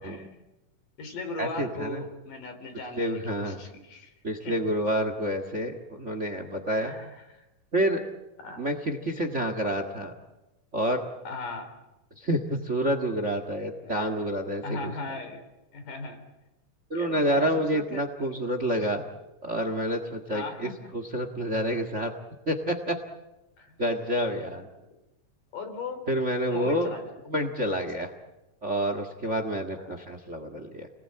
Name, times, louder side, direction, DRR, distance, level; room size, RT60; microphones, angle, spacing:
voice 1, 0.0-0.4 1.0-4.1 4.4-4.6 6.7-7.4 8.4-8.6 11.3-11.7 13.8-14.1 14.6-15.4 15.7-16.2 16.9-18.3 18.7-18.9 20.3-20.7 23.6-23.8 25.5-26.0 26.5-27.1 29.8-30.0, left 3 dB, 80° left, 6 dB, 5.2 m, -38 dB
voice 2, 1.4-2.0 3.0-3.6 4.2-6.9 7.7-8.0 8.6-10.1 10.7-11.0 12.2-14.9 16.9-19.1 19.4-22.1 22.5-23.0 23.8-24.7 26.1-26.9 27.3-28.1 28.6-30.9, equal, 30° right, 8 dB, 1.5 m, -28 dB
30.0 x 20.0 x 8.8 m, 0.99 s
omnidirectional pair, 3.7 m